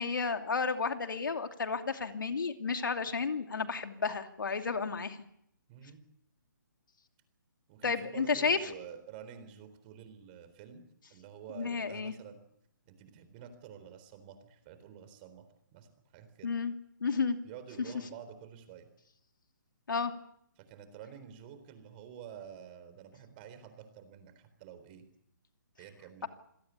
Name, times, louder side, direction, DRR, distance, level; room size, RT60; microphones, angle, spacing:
voice 1, 0.0-5.2 7.8-8.6 11.5-12.1 16.4-16.7 17.0-17.4 19.9-20.1, left 5 dB, 75° left, 7 dB, 2.8 m, -32 dB
voice 2, 5.7-6.0 7.7-10.8 11.1-12.4 12.9-15.5 15.7-16.5 17.4-18.9 20.6-25.1 25.8-26.3, right 8 dB, 30° right, 10 dB, 4.0 m, -49 dB
27.0 x 18.0 x 8.4 m, 0.75 s
hypercardioid pair, 155°, 11 cm